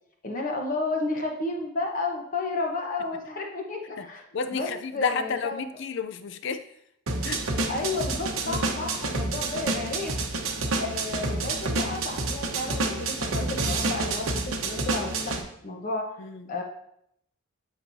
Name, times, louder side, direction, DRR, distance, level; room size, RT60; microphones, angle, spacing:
voice 1, 0.2-4.2 4.5-5.7 7.7-10.1 10.8-15.3 15.6-16.0 16.5-16.6, left 2 dB, 40° left, 0 dB, 1.0 m, -32 dB
voice 2, 4.3-6.6 7.2-7.4 8.5-8.6 16.2-16.5, left 5 dB, 55° left, 11 dB, 0.5 m, -31 dB
sound 1, 7.1-15.4, right 2 dB, 70° right, 1.0 m, -29 dB
13.0 x 4.6 x 2.7 m, 0.74 s
head